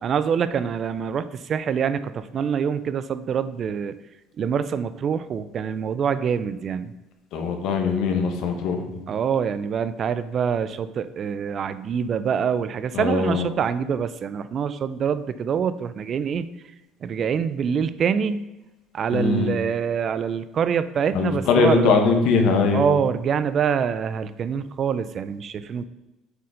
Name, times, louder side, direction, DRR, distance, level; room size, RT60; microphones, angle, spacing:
voice 1, 0.0-4.0 4.4-6.9 9.1-16.5 17.0-18.4 18.9-21.9 22.7-25.8, right 7 dB, 45° right, 13 dB, 0.5 m, -25 dB
voice 2, 7.3-9.0 12.9-13.5 19.1-19.5 21.1-22.9, left 4 dB, 70° left, 4 dB, 1.4 m, -21 dB
7.9 x 4.3 x 5.0 m, 1.0 s
supercardioid pair, 100°, 0 cm